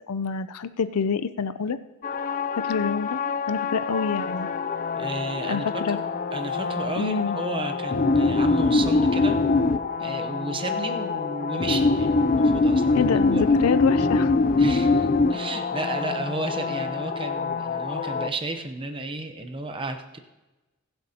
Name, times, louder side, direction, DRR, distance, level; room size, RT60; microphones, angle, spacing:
voice 1, 0.1-1.8 2.5-3.2 3.5-4.5 5.5-6.0 7.0-7.4 12.9-14.3, left 5 dB, 90° left, 12 dB, 0.5 m, -26 dB
sound 1, 2.0-18.3, left 3 dB, 40° left, 0.4 m, -24 dB
voice 2, 5.0-6.0 6.3-9.4 10.0-13.4 14.6-20.2, right 2 dB, 25° right, 6 dB, 0.8 m, -33 dB
21.0 x 7.9 x 2.9 m, 1.1 s
head